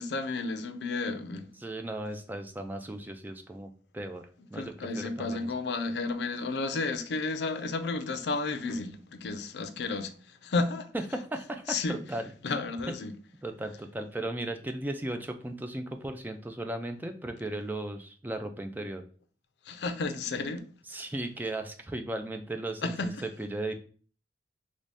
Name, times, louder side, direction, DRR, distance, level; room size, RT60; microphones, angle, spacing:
voice 1, 0.0-1.5 4.5-10.9 11.7-12.0 12.4-13.1 19.6-20.7 20.9-21.0 22.8-23.2, left 3 dB, 65° left, 0.4 m, -32 dB
voice 2, 1.6-4.2 4.5-5.5 10.9-11.6 11.9-12.3 13.4-19.0 20.9-23.7, right 1 dB, 10° right, 0.4 m, -36 dB
3.1 x 2.7 x 3.3 m
head